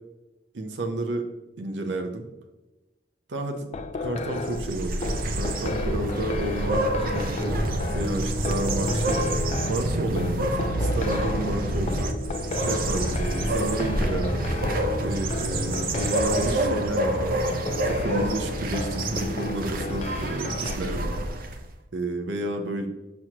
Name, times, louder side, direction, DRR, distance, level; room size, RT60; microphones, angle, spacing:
voice 1, 0.5-1.3 1.6-2.3 3.3-3.7 4.0-5.1 5.4-7.6 7.9-9.2 9.7-12.1 12.6-14.4 15.0-17.4 17.8-21.4 21.9-22.9, right 2 dB, 90° right, 4 dB, 0.7 m, -31 dB
sound 1, 3.7-20.8, left 3 dB, 40° left, 0.4 m, -34 dB
sound 2, 4.4-21.7, right 1 dB, 55° right, 0.7 m, -27 dB
6.2 x 6.1 x 2.9 m, 1.1 s
head